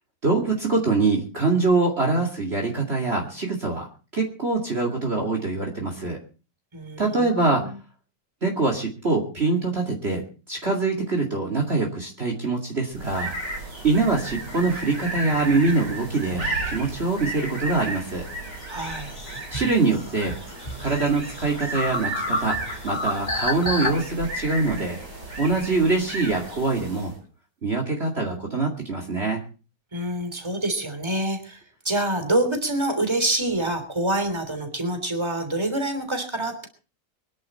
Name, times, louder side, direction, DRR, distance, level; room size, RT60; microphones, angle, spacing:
voice 1, 0.2-3.9 4.1-6.2 7.0-7.7 8.4-13.3 13.8-18.3 19.5-20.4 20.8-25.0 25.4-27.1 27.6-29.4, right 3 dB, 35° right, 0 dB, 2.6 m, -24 dB
voice 2, 6.7-7.7 18.7-19.1 29.9-36.7, right 1 dB, 15° right, 7 dB, 3.3 m, -26 dB
sound 1, 12.9-27.2, right 2 dB, 75° right, 8.2 m, -34 dB
sound 2, 18.6-23.9, left 1 dB, 25° left, 2.3 m, -30 dB
24.0 x 11.0 x 4.3 m, 0.36 s
omnidirectional pair, 1.8 m